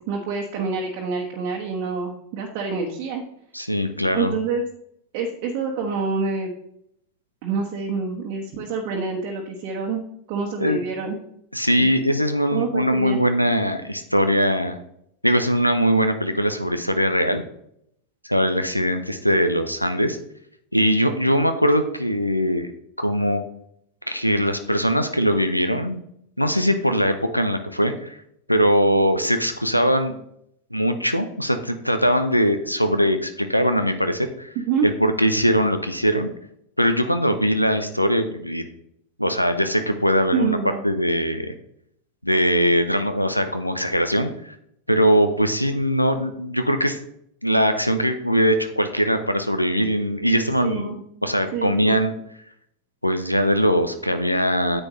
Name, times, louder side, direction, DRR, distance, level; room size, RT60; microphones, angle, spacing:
voice 1, 0.1-3.2 4.1-4.6 5.1-6.5 7.4-10.0 10.3-11.2 11.8-11.9 12.5-13.2 34.5-34.9 40.3-40.8 50.6-51.0 51.5-52.0, right 4 dB, 45° right, -1 dB, 1.3 m, -27 dB
voice 2, 3.5-4.3 10.6-10.8 11.5-14.8 15.2-17.4 18.2-20.2 20.7-22.7 23.0-23.4 24.1-26.0 26.4-28.2 28.5-30.1 30.7-34.5 34.8-36.3 36.8-38.6 39.2-40.6 40.8-41.5 42.2-44.3 44.9-47.0 47.4-50.9 51.2-52.1 53.0-54.8, equal, 90° left, 9 dB, 0.7 m, -21 dB
9.7 x 7.8 x 3.2 m, 0.72 s
figure-of-eight pair, 90°, 0 cm